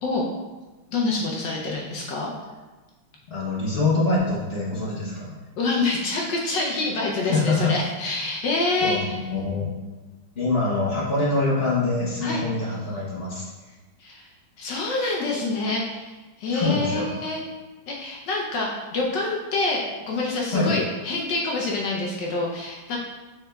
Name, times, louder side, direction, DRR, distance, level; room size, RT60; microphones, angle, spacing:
voice 1, 0.9-2.3 5.6-9.2 12.2-12.4 14.0-14.3 14.6-17.4 17.9-23.0, left 3 dB, 70° left, -2 dB, 1.1 m, -26 dB
voice 2, 3.3-5.3 7.2-7.8 8.8-9.7 10.4-13.7 16.5-17.1 20.5-20.7, left 3 dB, 50° left, -7 dB, 0.7 m, -24 dB
6.5 x 3.4 x 2.3 m, 1.2 s
omnidirectional pair, 2.3 m